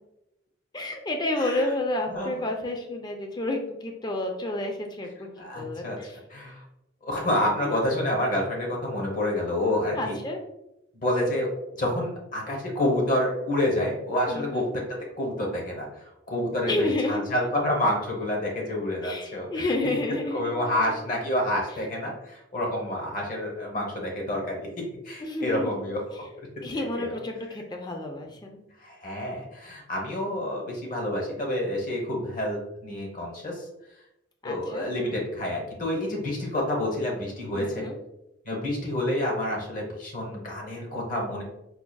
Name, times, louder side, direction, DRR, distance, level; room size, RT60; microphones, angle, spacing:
voice 1, 0.7-5.3 5.6-6.2 7.6-7.8 9.9-10.4 14.3-14.7 16.7-17.2 19.0-20.6 25.2-25.9 26.6-28.6 34.4-34.9 37.5-38.0, left 2 dB, 20° left, 3 dB, 0.4 m, -30 dB
voice 2, 1.3-1.7 2.1-2.3 5.4-6.0 6.3-6.6 7.0-10.2 11.0-11.5 11.8-19.7 20.3-24.7 25.0-26.5 26.7-27.2 28.8-33.6 34.4-37.8 38.4-41.4, left 1 dB, 45° left, -1 dB, 0.9 m, -28 dB
4.7 x 2.3 x 2.2 m, 0.88 s
head